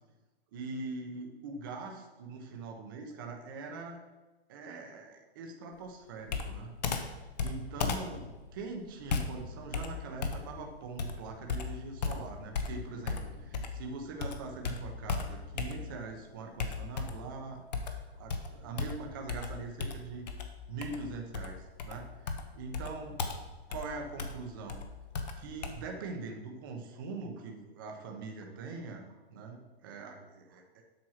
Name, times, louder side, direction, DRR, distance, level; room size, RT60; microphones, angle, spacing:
voice 1, 0.5-4.0 4.5-6.7 7.4-17.7 18.1-20.3 20.7-23.2 23.7-24.8 25.4-30.8, right 3 dB, 20° right, 2 dB, 0.7 m, -42 dB
Computer keyboard, 6.3-13.9 14.2-16.1 16.6-17.3 17.7-25.7, left 4 dB, 40° left, 0.9 m, -36 dB
7.8 x 6.0 x 5.7 m, 1.2 s
hypercardioid pair, 180°, 32 cm